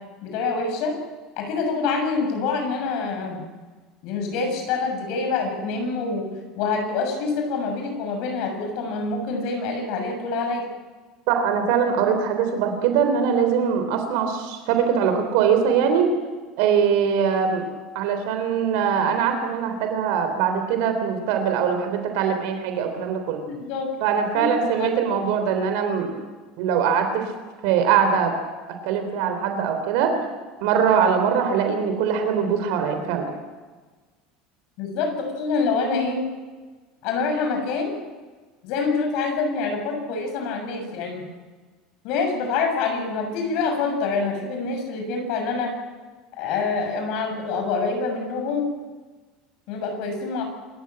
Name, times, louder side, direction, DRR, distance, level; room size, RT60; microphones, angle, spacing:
voice 1, 0.2-1.0 1.4-3.4 4.0-6.3 6.6-10.6 23.5-23.9 24.3-24.9 34.8-36.2 37.0-38.0 38.6-41.2 42.0-45.7 46.4-48.7 49.7-50.4, left 4 dB, 50° left, 3 dB, 6.9 m, -26 dB
voice 2, 11.3-16.1 16.6-17.6 18.0-23.4 24.0-26.1 26.6-27.2 27.6-28.3 28.8-30.2 30.6-33.3, right 7 dB, 65° right, 6 dB, 3.5 m, -22 dB
27.0 x 15.0 x 8.9 m, 1.3 s
cardioid pair, 175°, 0 cm